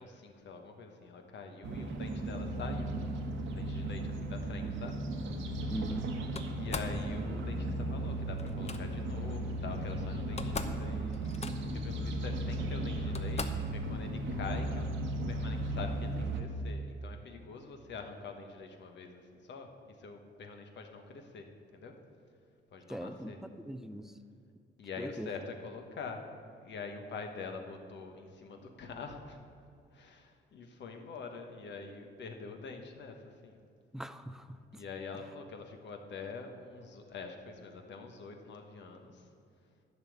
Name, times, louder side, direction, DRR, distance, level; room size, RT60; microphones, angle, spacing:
voice 1, 0.0-2.9 3.5-5.0 6.5-11.3 11.6-21.5 21.7-21.9 22.7-23.4 24.8-26.3 26.6-29.4 29.9-33.6 34.7-39.3, left 4 dB, 65° left, 4 dB, 1.3 m, -45 dB
sound 1, 1.6-16.4, right 1 dB, 75° right, 1.2 m, -36 dB
voice 2, 5.7-6.1 22.9-24.1 25.0-25.3 33.9-34.8, equal, ahead, 11 dB, 0.5 m, -41 dB
Slam, 6.3-7.0 8.4-8.8 9.9-10.0 10.2-10.8 11.1-11.8 12.6-12.7 13.1-13.7, left 4 dB, 35° left, 0.8 m, -40 dB
11.5 x 5.4 x 7.9 m, 2.4 s
cardioid pair, 90°, 20 cm